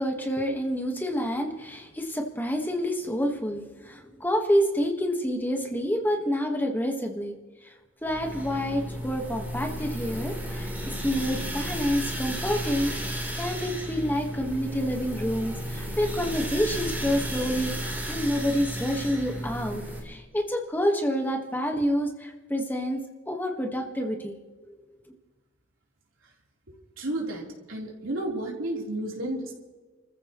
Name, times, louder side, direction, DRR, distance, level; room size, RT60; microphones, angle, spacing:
voice 1, 0.0-7.3 8.0-24.3, equal, 10° left, 2 dB, 1.4 m, -28 dB
sound 1, 8.1-20.0, equal, 10° right, 3.4 m, -33 dB
voice 2, 27.0-29.6, right 1 dB, 85° right, -2 dB, 3.6 m, -32 dB
29.5 x 14.5 x 3.1 m, 1.3 s
head